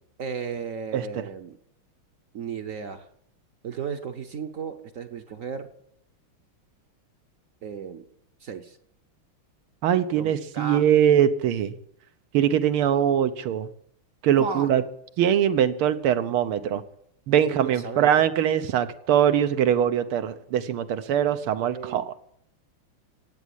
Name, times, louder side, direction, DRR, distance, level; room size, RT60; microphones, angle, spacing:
voice 1, 0.2-1.6 2.3-3.1 3.6-5.7 7.6-8.0 8.4-8.8 10.2-10.8 14.4-14.7 17.5-18.1 21.7-22.0, right 6 dB, 55° right, 8 dB, 0.9 m, -34 dB
voice 2, 9.8-11.8 12.3-13.7 14.2-14.8 15.2-16.8 17.3-22.1, right 9 dB, 90° right, 11 dB, 1.8 m, -22 dB
16.0 x 8.4 x 10.0 m, 0.72 s
omnidirectional pair, 2.3 m